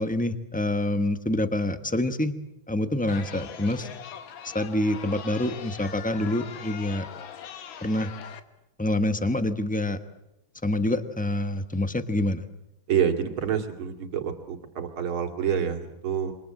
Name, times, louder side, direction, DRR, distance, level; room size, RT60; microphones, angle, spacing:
voice 1, 0.0-2.3 2.7-3.9 4.4-7.1 7.8-8.1 8.8-10.0 10.6-12.4, left 1 dB, 5° left, 9 dB, 0.6 m, -26 dB
Chatter, 3.1-8.4, left 8 dB, 65° left, 1.9 m, -41 dB
voice 2, 12.9-16.3, right 8 dB, 70° right, 5 dB, 3.0 m, -27 dB
27.5 x 24.5 x 7.7 m, 0.86 s
omnidirectional pair, 2.4 m